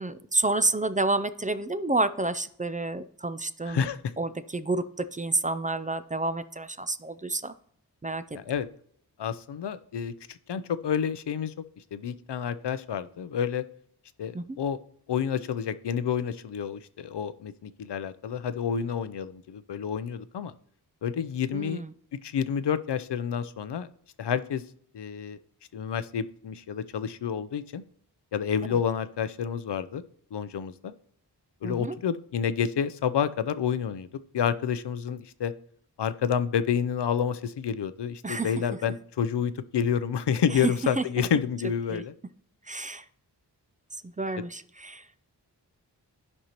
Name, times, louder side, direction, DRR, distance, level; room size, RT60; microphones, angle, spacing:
voice 1, 0.0-3.9 4.2-7.5 8.0-8.2 14.3-14.6 21.5-21.9 28.7-28.8 31.6-32.0 38.2-38.5 40.5-41.0 41.9-42.0 42.7-43.0 44.0-45.1, right 2 dB, 20° right, 12 dB, 0.3 m, -29 dB
voice 2, 3.7-4.1 8.3-8.7 9.2-11.5 11.9-13.6 14.2-14.8 15.1-20.5 21.0-21.8 22.2-23.9 24.2-24.6 24.9-25.4 25.7-27.8 28.3-30.0 30.3-30.9 31.6-34.1 34.3-35.5 36.0-42.1, left 8 dB, 75° left, 14 dB, 0.6 m, -29 dB
13.0 x 5.4 x 2.9 m, 0.65 s
wide cardioid pair, 85°, 42 cm